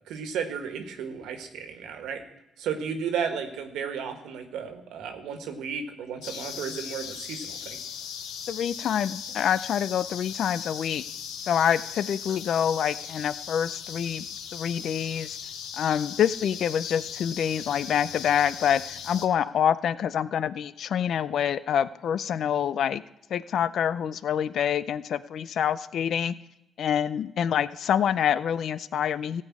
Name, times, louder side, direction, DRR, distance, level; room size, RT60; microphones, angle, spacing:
voice 1, 0.0-2.2 2.6-7.8, right 7 dB, 85° right, 7 dB, 1.5 m, -33 dB
sound 1, 6.2-19.3, left 8 dB, 90° left, 1.0 m, -38 dB
voice 2, 8.5-11.0 11.5-14.2 14.5-15.4 15.8-23.0 23.3-26.3 26.8-29.4, left 9 dB, 65° left, 16 dB, 0.5 m, -26 dB
15.5 x 5.4 x 8.5 m, 0.92 s
cardioid pair, 90°, 0 cm